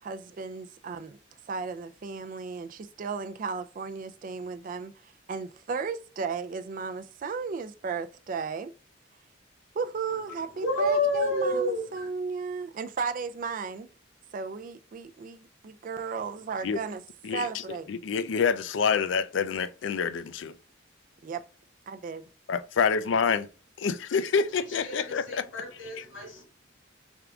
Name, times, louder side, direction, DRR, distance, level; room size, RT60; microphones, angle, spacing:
voice 1, 0.0-1.2 1.5-8.7 9.7-13.9 14.3-17.0 17.3-17.9 21.2-21.4 21.9-22.3, right 5 dB, 45° right, 0.3 m, -35 dB
voice 2, 10.1-12.1 24.5-26.4, left 1 dB, 85° left, 2.0 m, -30 dB
voice 3, 17.9-20.5 22.5-23.5 23.8-25.4, left 6 dB, 70° left, 0.4 m, -27 dB
3.6 x 3.5 x 3.5 m
head